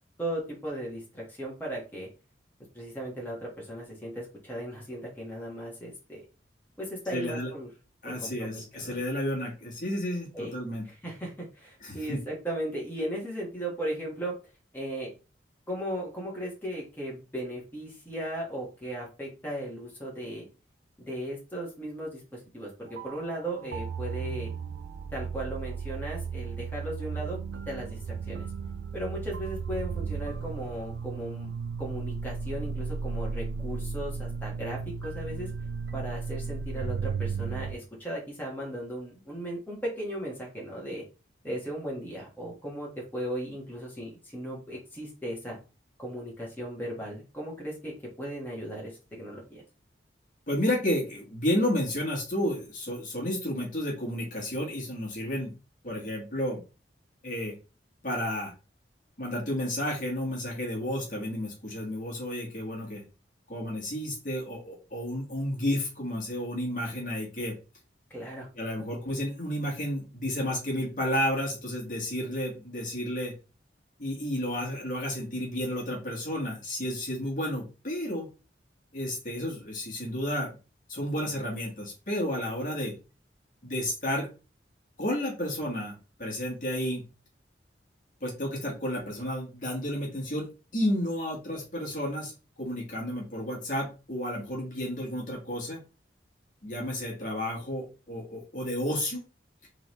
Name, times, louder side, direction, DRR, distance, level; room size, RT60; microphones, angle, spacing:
voice 1, 0.2-2.1 2.7-6.2 6.8-7.7 8.0-9.0 10.3-10.5 10.8-14.3 14.7-15.1 15.7-20.5 21.0-24.5 25.1-27.4 27.7-28.5 28.9-31.5 31.8-35.5 35.9-41.0 41.4-45.6 46.0-49.6 68.1-68.7, right 1 dB, 10° left, -3 dB, 1.5 m, -37 dB
voice 2, 7.1-7.5 8.0-10.8 11.8-12.2 50.5-55.5 55.8-56.6 57.2-57.5 58.0-58.5 59.2-63.0 63.5-67.5 68.6-73.3 74.0-78.3 78.9-80.6 80.9-82.9 83.6-84.3 85.0-87.0 88.2-92.3 92.6-95.8 96.6-99.2, left 1 dB, 45° left, -2 dB, 1.6 m, -31 dB
sound 1, 22.9-37.8, right 5 dB, 65° right, 0.4 m, -35 dB
3.7 x 3.5 x 3.1 m, 0.32 s
head